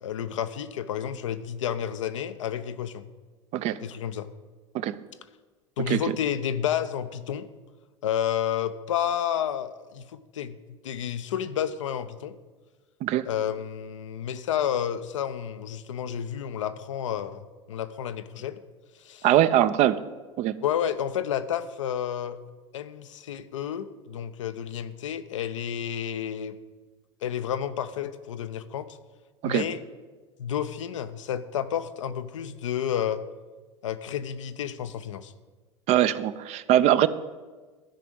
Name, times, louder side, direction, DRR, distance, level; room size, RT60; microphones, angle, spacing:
voice 1, 0.0-3.1 3.8-4.3 5.8-7.5 8.0-12.3 13.3-18.6 19.0-19.3 20.6-22.4 22.7-26.6 27.2-28.9 29.4-29.8 30.4-33.2 33.8-35.3, left 9 dB, 75° left, 11 dB, 0.6 m, -30 dB
voice 2, 19.2-20.0 20.4-20.5 29.4-29.6 35.9-37.1, right 12 dB, 45° right, 14 dB, 0.5 m, -22 dB
13.0 x 4.9 x 6.3 m, 1.3 s
hypercardioid pair, 80°, 16 cm